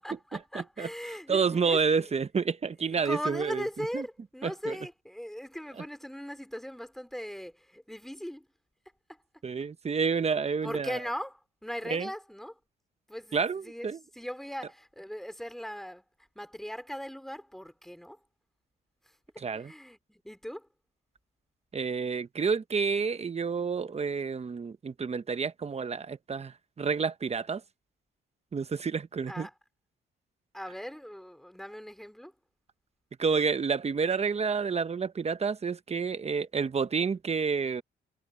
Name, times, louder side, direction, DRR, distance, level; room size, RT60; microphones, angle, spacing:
voice 1, 0.0-2.1 2.9-8.5 9.1-9.2 10.6-12.6 13.1-16.0 16.3-18.2 19.0-19.2 19.5-20.7 29.3-29.5 30.5-32.3, equal, ahead, 3.2 m, -39 dB
voice 2, 0.5-0.9 1.3-3.6 3.9-4.0 4.4-4.7 9.4-11.0 11.9-12.1 13.3-14.0 19.4-19.7 21.7-27.6 28.5-29.5 33.2-37.8, right 5 dB, 30° right, 1.1 m, -29 dB
cardioid pair, 90°, 20 cm